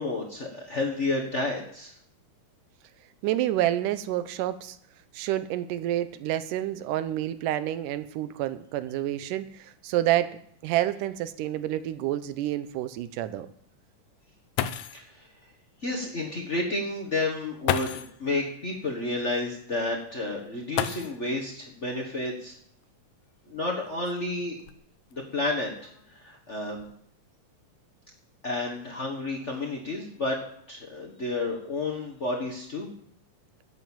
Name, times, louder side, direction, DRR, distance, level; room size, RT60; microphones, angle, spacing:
voice 1, 0.0-1.9 14.9-15.3 15.8-22.5 23.5-24.6 25.1-26.9 28.4-30.4 30.7-32.9, left 2 dB, 45° left, 0 dB, 0.9 m, -31 dB
voice 2, 3.2-4.8 5.1-13.5, right 13 dB, 90° right, 12 dB, 2.3 m, -29 dB
sound 1, 10.7-10.8 11.2-11.3 11.9-12.0 14.2-14.3 14.6-15.1 16.4-16.5 17.6-18.2 20.7-21.5 22.8-22.9 23.7-25.1 25.8-26.2 26.5-26.9, left 11 dB, 80° left, 1.9 m, -32 dB
10.5 x 8.4 x 7.3 m, 0.65 s
omnidirectional pair, 3.7 m